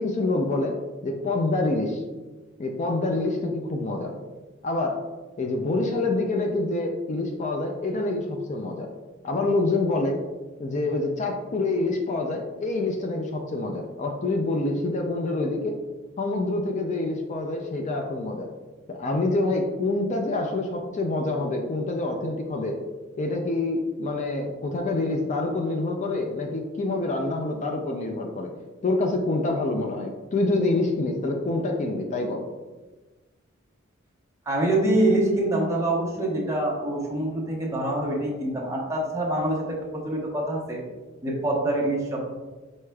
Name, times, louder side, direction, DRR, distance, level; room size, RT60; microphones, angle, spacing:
voice 1, 0.0-2.0 2.6-4.1 4.6-5.0 5.4-8.9 9.2-10.2 10.6-15.8 16.2-18.5 18.9-22.8 23.2-28.5 28.8-32.5, left 2 dB, 35° left, 3 dB, 0.4 m, -26 dB
voice 2, 34.5-40.8 41.2-42.2, right 1 dB, 15° right, -3 dB, 0.9 m, -25 dB
4.7 x 4.2 x 2.3 m, 1.2 s
head